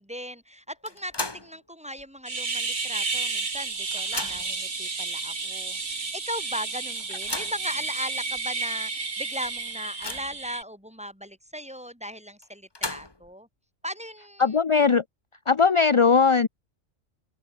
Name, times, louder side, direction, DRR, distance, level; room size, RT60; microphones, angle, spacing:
voice 1, 0.0-13.5 13.8-14.4, equal, 5° right, 5.9 m, -37 dB
sound 1, 0.8-1.6 2.0-2.1 3.1-3.2 3.5-4.6 5.4-5.5 5.9-6.0 6.9-7.7 8.4-8.5 8.8-8.9 9.4-10.5 12.4-13.3, left 2 dB, 20° left, 1.5 m, -36 dB
sound 2, 2.3-10.6, right 4 dB, 85° right, 3.3 m, -31 dB
voice 2, 14.4-15.0 15.5-16.5, left 5 dB, 35° left, 0.5 m, -19 dB
open air
omnidirectional pair, 1.3 m